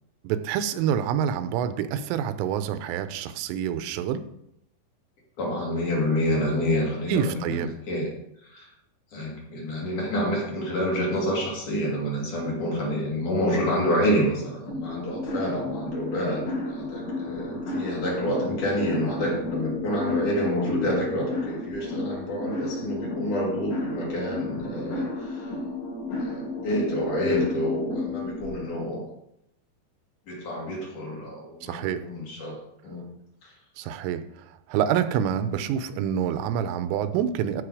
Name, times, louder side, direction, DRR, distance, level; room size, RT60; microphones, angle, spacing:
voice 1, 0.2-4.2 7.1-7.7 31.6-32.0 33.8-37.6, right 9 dB, 85° right, 11 dB, 3.3 m, -27 dB
voice 2, 5.4-8.1 8.4-8.7 9.1-25.5 26.2-29.1 30.3-32.6 32.8-33.1 33.4-33.6, equal, 45° left, -3 dB, 3.7 m, -28 dB
sound 1, 14.7-28.5, left 2 dB, 85° left, 7.0 m, -32 dB
15.0 x 6.6 x 5.0 m, 0.78 s
omnidirectional pair, 5.6 m